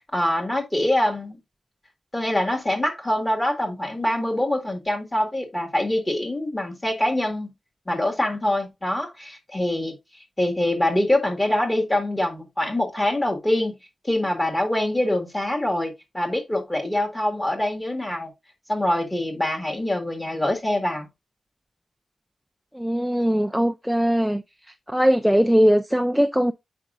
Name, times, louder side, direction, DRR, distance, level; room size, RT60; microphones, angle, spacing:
voice 1, 0.1-1.4 2.1-7.5 7.9-9.9 10.4-13.7 14.0-18.3 18.7-21.1, left 1 dB, 15° left, 1.7 m, -24 dB
voice 2, 22.7-24.4 24.9-26.5, equal, ahead, 0.3 m, -20 dB
8.1 x 5.1 x 2.4 m
wide cardioid pair, 145°, 0 cm